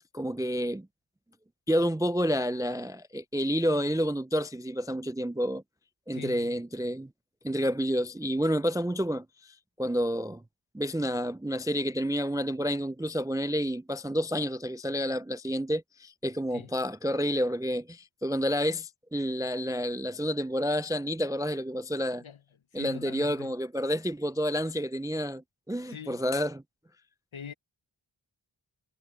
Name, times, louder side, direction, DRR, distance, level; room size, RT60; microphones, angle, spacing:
voice 1, 0.1-0.9 1.7-5.6 6.1-7.1 7.4-10.4 10.7-22.2 22.7-26.6, equal, 10° right, 0.3 m, -29 dB
voice 2, 6.1-6.6 16.5-16.7 22.2-22.4 22.7-23.5 25.9-26.2 27.3-27.5, left 8 dB, 70° left, 1.0 m, -43 dB
wide cardioid pair, 45°, 50 cm